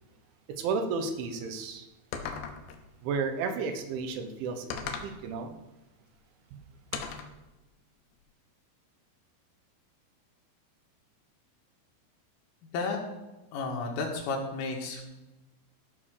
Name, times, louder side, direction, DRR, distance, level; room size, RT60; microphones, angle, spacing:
voice 1, 0.5-1.9 3.0-5.5, right 4 dB, 75° right, 6 dB, 3.4 m, -33 dB
sound 1, 2.1-2.8 4.7-5.2 6.9-7.4, left 6 dB, 75° left, 2.9 m, -37 dB
voice 2, 13.5-15.0, left 3 dB, 90° left, 1 dB, 4.4 m, -32 dB
14.0 x 6.1 x 6.4 m, 1.1 s
omnidirectional pair, 5.6 m